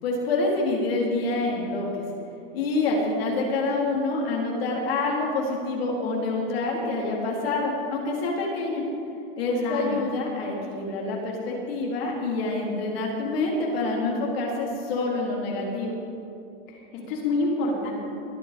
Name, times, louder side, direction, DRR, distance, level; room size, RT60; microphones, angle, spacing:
voice 1, 0.0-2.0 2.5-8.8 9.4-16.0, left 2 dB, 80° left, -2 dB, 4.0 m, -27 dB
voice 2, 9.5-10.0 16.7-17.9, left 2 dB, 60° left, -3 dB, 4.4 m, -28 dB
21.0 x 9.2 x 5.3 m, 2.6 s
supercardioid pair, 140°, 30 cm